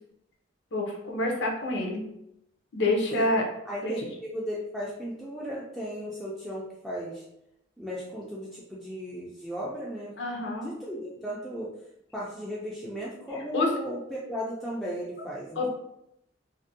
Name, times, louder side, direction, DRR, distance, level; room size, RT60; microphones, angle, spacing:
voice 1, 0.7-2.1 2.7-3.4 3.8-4.0 10.2-10.7 13.5-13.7 15.6-15.7, left 2 dB, 65° left, 0 dB, 0.6 m, -27 dB
voice 2, 3.7-7.2 7.8-10.1 10.6-11.7 12.1-15.7, equal, ahead, -7 dB, 0.3 m, -36 dB
2.5 x 2.1 x 2.6 m, 0.82 s
head